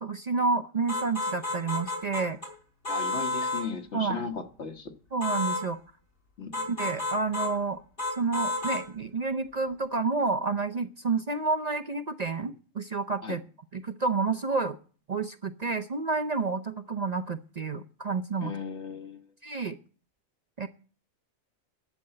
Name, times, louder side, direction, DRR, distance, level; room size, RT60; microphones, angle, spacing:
voice 1, 0.0-2.4 3.9-4.2 5.1-5.8 6.7-7.8 8.2-13.4 13.7-14.8 15.1-18.5 19.4-19.8 20.6-20.7, right 4 dB, 40° right, 8 dB, 0.6 m, -29 dB
sound 1, 0.9-2.5 2.8-3.7 5.2-5.7 6.5-7.5 8.0-8.9, left 2 dB, 45° left, 3.9 m, -31 dB
voice 2, 2.9-4.9 6.4-6.5 13.2-13.4 18.4-19.2, left 5 dB, 60° left, 6 dB, 1.6 m, -36 dB
11.5 x 6.7 x 8.7 m, 0.39 s
omnidirectional pair, 1.3 m